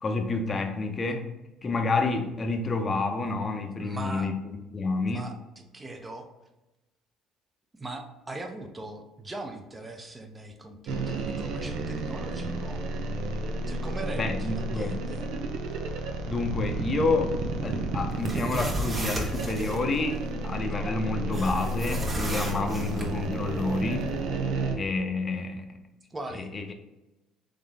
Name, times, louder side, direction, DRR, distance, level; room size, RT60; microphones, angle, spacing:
voice 1, 0.0-1.3 1.6-5.3 14.1-15.0 16.3-17.4 17.6-24.1 24.7-25.8 26.3-26.7, left 3 dB, 30° left, 5 dB, 0.7 m, -29 dB
voice 2, 3.8-4.3 5.1-6.3 7.7-12.8 13.7-15.2 26.1-26.5, right 2 dB, 20° right, 4 dB, 0.8 m, -40 dB
sound 1, 10.9-24.8, right 2 dB, 75° right, 0.7 m, -32 dB
sound 2, 18.1-19.8 21.3-23.1, right 1 dB, 35° right, 1.2 m, -34 dB
3.9 x 3.6 x 3.4 m, 1.0 s
supercardioid pair, 90°, 0 cm